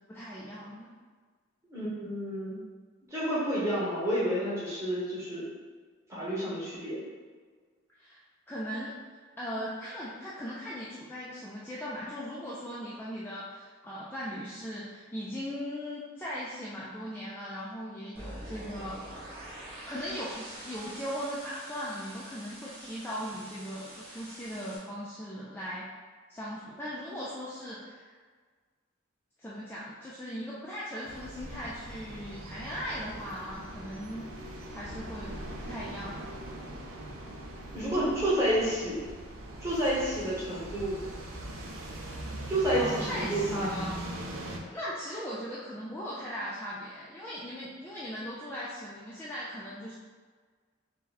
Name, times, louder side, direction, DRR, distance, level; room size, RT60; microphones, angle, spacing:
voice 1, 0.1-0.9 8.0-8.2 8.5-8.9 9.4-19.1 19.9-25.9 26.3-28.1 29.4-34.3 34.7-35.4 35.7-36.2 42.7-44.0 44.7-49.9, equal, 10° left, -8 dB, 0.3 m, -38 dB
voice 2, 1.7-2.6 3.1-5.5 6.1-7.0 37.7-39.1 39.6-41.0 42.5-43.7, right 1 dB, 15° right, -8 dB, 1.1 m, -29 dB
sound 1, 18.2-24.8, right 1 dB, 45° right, 1.1 m, -45 dB
sound 2, 31.0-44.6, right 1 dB, 90° right, 0.6 m, -41 dB
3.8 x 2.2 x 4.0 m, 1.5 s
head